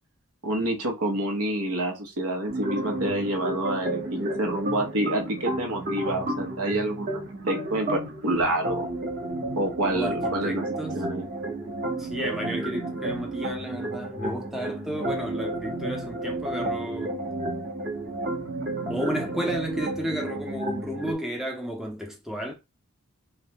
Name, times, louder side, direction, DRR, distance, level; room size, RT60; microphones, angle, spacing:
voice 1, 0.4-8.9 9.6-10.6 10.9-11.3, right 1 dB, 85° right, 0.8 m, -28 dB
sound 1, 2.5-21.1, right 1 dB, 40° right, 0.8 m, -31 dB
voice 2, 9.9-11.0 12.0-17.2 18.9-22.5, right 1 dB, ahead, 0.3 m, -33 dB
3.1 x 2.1 x 2.7 m
head